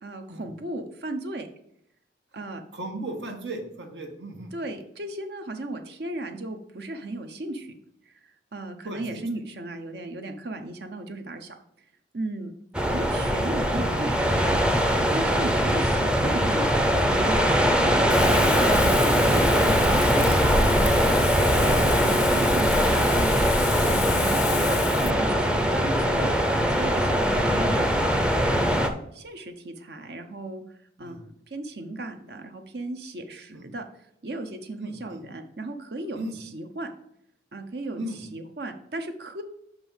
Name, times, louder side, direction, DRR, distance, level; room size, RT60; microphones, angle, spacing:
voice 1, 0.0-1.5 2.3-2.6 4.5-7.7 8.1-11.5 12.1-12.5 12.9-17.5 17.8-23.6 23.9-28.8 29.1-30.6 31.0-33.8 34.2-36.9 37.5-38.0 38.3-39.4, right 2 dB, 65° right, 6 dB, 0.9 m, -36 dB
voice 2, 2.7-4.5 8.8-9.2 24.4-24.9 31.0-31.2 33.5-33.6 34.8-35.2 36.2-36.3 38.0-38.2, right 1 dB, 85° right, 3 dB, 1.5 m, -36 dB
sound 1, 12.7-28.9, equal, 5° right, 0.6 m, -21 dB
Wind, 18.1-25.1, left 9 dB, 65° left, 0.3 m, -33 dB
6.2 x 5.3 x 5.7 m, 0.77 s
head